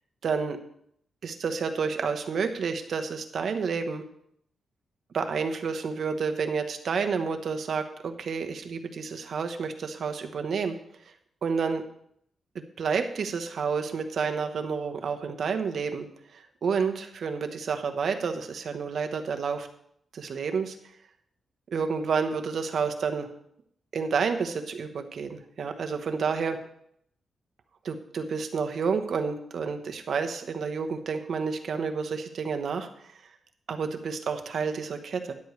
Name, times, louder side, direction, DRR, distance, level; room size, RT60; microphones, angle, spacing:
voice 1, 0.2-0.6 1.2-4.0 5.1-10.7 11.4-11.8 12.5-16.1 16.3-19.7 20.1-20.8 21.7-23.3 23.9-26.6 27.8-32.9 33.7-35.3, right 5 dB, 55° right, 6 dB, 1.0 m, -30 dB
13.0 x 10.5 x 3.2 m, 0.71 s
wide cardioid pair, 170°, 0 cm